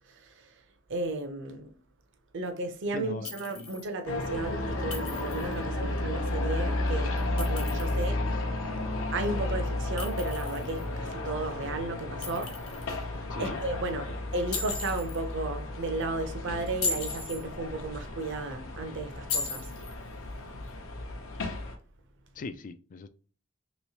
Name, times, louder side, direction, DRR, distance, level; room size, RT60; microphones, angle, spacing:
voice 1, 0.1-0.5 0.9-1.7 2.3-8.3 9.1-19.7, right 2 dB, 60° right, 0.7 m, -34 dB
voice 2, 2.9-3.3 3.6-3.7 13.3-13.6 22.4-23.1, left 3 dB, 40° left, 0.3 m, -39 dB
Chink clink, 3.2-3.9 4.9-5.5 7.2-8.1 10.0-10.8 12.2-13.0 14.5-15.2 16.7-17.4 19.3-19.9, left 4 dB, 85° left, 1.0 m, -36 dB
sound 1, 4.1-21.8, left 2 dB, 65° left, 0.8 m, -33 dB
3.1 x 3.0 x 2.8 m
head